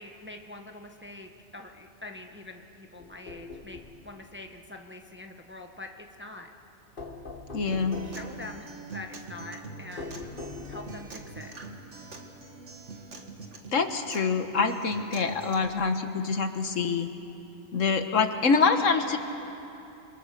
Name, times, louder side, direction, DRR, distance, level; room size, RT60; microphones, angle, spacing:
voice 1, 0.0-6.5 8.0-10.3 10.7-11.5, left 2 dB, 10° right, 3 dB, 1.1 m, -44 dB
sound 1, 3.0-4.0 7.0-8.3 10.0-11.1, left 3 dB, 40° left, 1.8 m, -41 dB
voice 2, 7.5-8.0 13.7-17.1 17.7-19.2, left 4 dB, 70° left, 7 dB, 1.6 m, -25 dB
Acoustic guitar, 7.7-15.7, right 3 dB, 60° right, 2.0 m, -44 dB
29.5 x 23.0 x 6.7 m, 3.0 s
omnidirectional pair, 1.4 m